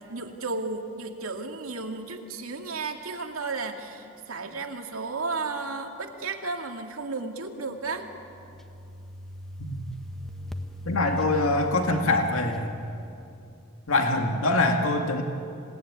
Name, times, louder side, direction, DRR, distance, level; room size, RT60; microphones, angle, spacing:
voice 1, 0.0-8.1, right 3 dB, 85° right, 4 dB, 2.3 m, -33 dB
sound 1, 7.8-13.5, left 1 dB, ahead, 1.2 m, -39 dB
voice 2, 10.9-12.7 13.9-15.2, left 2 dB, 75° left, 4 dB, 2.0 m, -24 dB
27.0 x 19.0 x 9.8 m, 2.6 s
head